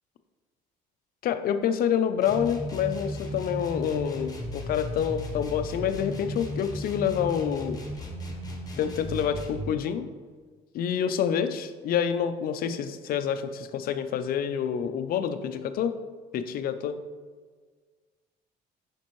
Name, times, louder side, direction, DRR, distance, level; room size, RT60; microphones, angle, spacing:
voice 1, 1.2-7.8 8.8-10.1 10.7-16.0 16.3-17.0, left 8 dB, 60° left, 9 dB, 0.5 m, -27 dB
sound 1, 2.2-9.7, left 1 dB, 20° left, 1.1 m, -35 dB
7.1 x 5.2 x 3.1 m, 1.5 s
cardioid pair, 110°, 17 cm